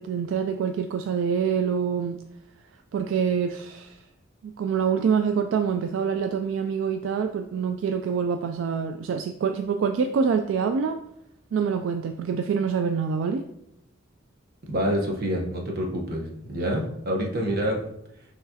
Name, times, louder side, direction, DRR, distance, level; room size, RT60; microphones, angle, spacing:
voice 1, 0.0-2.2 2.9-4.0 4.4-11.0 11.5-13.4, right 6 dB, 75° right, 6 dB, 0.3 m, -26 dB
voice 2, 14.7-17.8, equal, 55° right, 0 dB, 1.0 m, -27 dB
5.9 x 3.2 x 2.7 m, 0.77 s
head